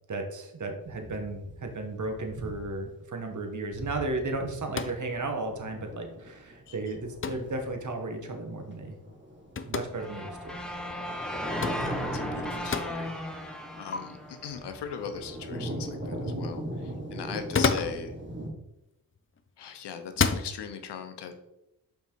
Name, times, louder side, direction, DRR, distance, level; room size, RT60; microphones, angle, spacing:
voice 1, 0.1-9.0 9.6-10.6, right 2 dB, 45° right, 4 dB, 1.4 m, -34 dB
sound 1, 0.8-2.8 3.2-3.3 3.7-18.5, right 1 dB, 30° right, 2.3 m, -42 dB
sound 2, 4.7-5.1 7.2-7.5 9.6-9.9 11.6-11.8 12.7-12.9 13.9-14.0 17.3-18.0 19.2-19.5 20.1-20.5, left 5 dB, 30° left, 0.7 m, -28 dB
sound 3, 10.0-15.0, equal, ahead, 1.2 m, -35 dB
voice 2, 11.6-18.1 19.6-21.3, left 7 dB, 85° left, 7 dB, 0.9 m, -40 dB
5.6 x 4.7 x 4.6 m, 0.86 s
cardioid pair, 50°, 40 cm